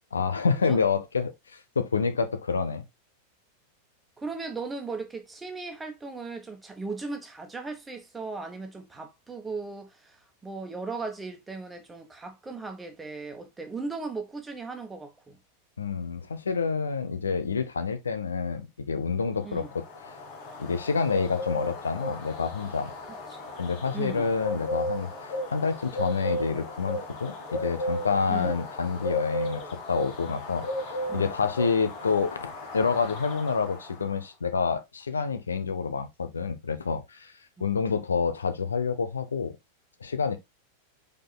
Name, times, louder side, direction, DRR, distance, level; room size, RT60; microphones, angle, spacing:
voice 1, 0.1-2.8 15.8-19.8 20.6-22.9 23.6-29.6 29.9-30.7 31.1-37.3 37.6-39.6 40.0-40.4, left 5 dB, 75° left, 0.7 m, -28 dB
voice 2, 4.2-15.4 19.4-19.7 23.3-23.5 23.9-24.4 28.3-28.5 31.1-31.3 37.6-37.7, right 4 dB, 10° right, 1.3 m, -37 dB
sound 1, 19.5-34.1, left 1 dB, 45° left, 1.5 m, -35 dB
5.0 x 4.6 x 2.3 m
figure-of-eight pair, 90°, 0 cm